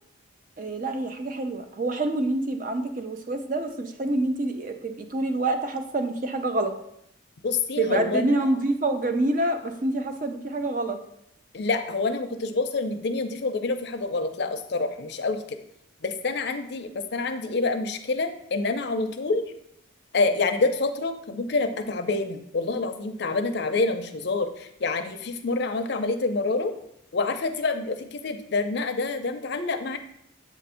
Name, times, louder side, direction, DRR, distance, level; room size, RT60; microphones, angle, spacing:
voice 1, 0.6-6.7 7.8-11.0, right 2 dB, 40° right, 6 dB, 0.5 m, -27 dB
voice 2, 7.4-8.5 11.5-15.6 16.0-19.5 20.1-26.7 27.1-30.0, left 3 dB, 55° left, 8 dB, 0.5 m, -27 dB
7.3 x 2.6 x 5.5 m, 0.75 s
head